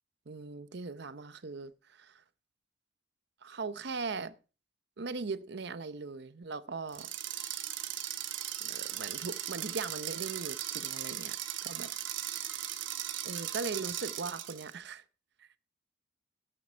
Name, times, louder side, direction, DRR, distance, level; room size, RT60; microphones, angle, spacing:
voice 1, 0.3-2.2 3.4-4.3 5.0-7.1 8.6-11.4 11.6-11.9 13.2-15.0 15.4-15.5, right 4 dB, 60° right, 0.7 m, -39 dB
sound 1, 6.9-14.7, right 12 dB, 85° right, 1.2 m, -38 dB
11.0 x 7.6 x 5.5 m
head